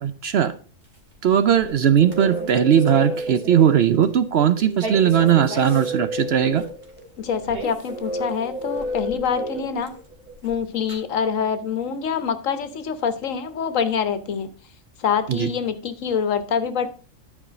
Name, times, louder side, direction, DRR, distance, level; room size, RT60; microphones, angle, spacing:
voice 1, 0.0-0.5 1.2-6.6 15.3-15.5, right 9 dB, 60° right, 12 dB, 0.8 m, -18 dB
sound 1, 0.8-3.7 4.0-4.2 4.7-10.9, right 2 dB, 45° right, 2.5 m, -38 dB
sound 2, 1.6-10.3, equal, 10° right, 1.2 m, -31 dB
voice 2, 7.2-9.9 10.4-14.5 15.0-16.9, left 7 dB, 90° left, 11 dB, 1.3 m, -25 dB
11.0 x 4.9 x 5.1 m, 0.37 s
omnidirectional pair, 1.3 m